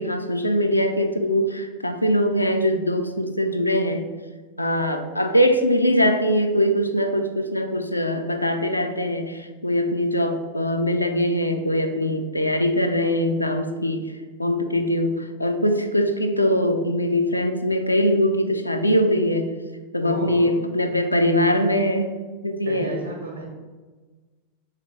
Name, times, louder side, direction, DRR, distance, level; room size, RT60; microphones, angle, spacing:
voice 1, 0.0-4.1 4.6-14.1 14.4-19.5 19.9-22.1 22.4-22.9, equal, 85° left, 6 dB, 0.3 m, -22 dB
voice 2, 20.0-20.5 22.6-23.5, right 2 dB, 75° right, -2 dB, 0.8 m, -32 dB
3.3 x 3.3 x 4.3 m, 1.3 s
figure-of-eight pair, 90°, 0 cm